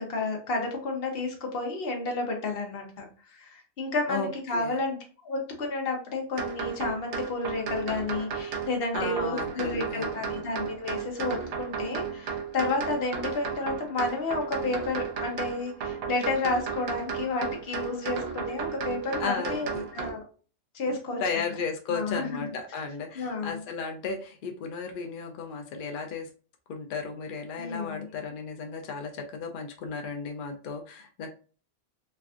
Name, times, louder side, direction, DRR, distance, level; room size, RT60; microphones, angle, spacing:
voice 1, 0.0-5.0 5.2-20.2 20.7-21.2 21.9-22.5 23.1-23.6 27.6-28.1, left 3 dB, 50° left, 2 dB, 0.9 m, -31 dB
voice 2, 4.1-4.8 8.9-10.5 19.2-19.9 20.9-26.3 26.7-31.3, left 5 dB, 80° left, 4 dB, 0.4 m, -35 dB
sound 1, 6.4-20.1, right 6 dB, 60° right, 0.7 m, -34 dB
3.2 x 2.4 x 2.3 m, 0.38 s
omnidirectional pair, 1.4 m